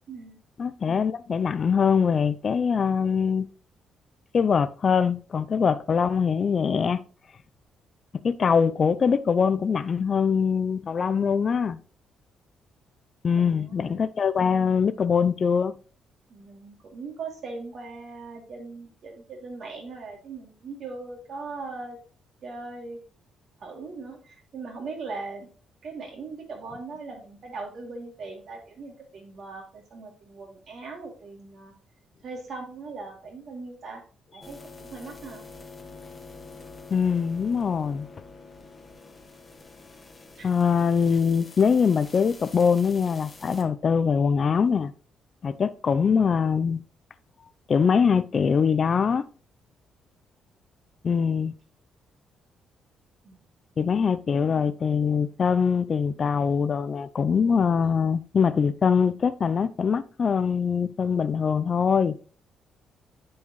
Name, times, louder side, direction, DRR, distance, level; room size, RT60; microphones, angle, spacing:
voice 1, 0.1-0.4 13.3-14.1 16.3-22.0 22.4-23.0 23.6-25.5 25.8-31.7 32.2-34.0 34.3-35.4 40.4-40.5 53.2-53.4 54.3-54.7, right 3 dB, 60° right, 2.6 m, -40 dB
voice 2, 0.6-3.5 4.3-7.0 8.2-11.8 13.2-15.7 36.9-38.1 40.4-44.9 45.4-46.8 47.7-49.2 51.0-51.5 53.8-62.2, left 6 dB, 45° left, 0.4 m, -23 dB
sound 1, 34.4-43.6, left 3 dB, 25° left, 1.2 m, -46 dB
9.9 x 4.7 x 3.0 m
cardioid pair, 90°, 0 cm